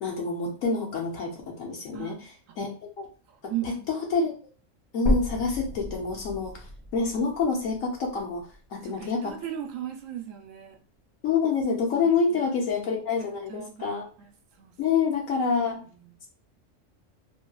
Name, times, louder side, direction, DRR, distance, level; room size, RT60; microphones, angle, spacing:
voice 1, 0.0-2.2 2.6-2.7 3.0-3.1 3.4-4.3 4.9-6.7 6.9-9.4 11.2-14.0 14.8-15.8, left 5 dB, 90° left, 0 dB, 1.2 m, -27 dB
voice 2, 3.5-3.9 8.8-10.8 12.3-12.4 13.5-14.3 14.6-14.7 15.4-16.1, right 11 dB, 80° right, 4 dB, 1.0 m, -37 dB
sound 1, 5.1-9.1 9.6-9.7 10.3-10.4 10.7-10.8 11.6-11.7, equal, 25° left, 0.9 m, -32 dB
3.0 x 2.7 x 2.2 m, 0.37 s
omnidirectional pair, 1.3 m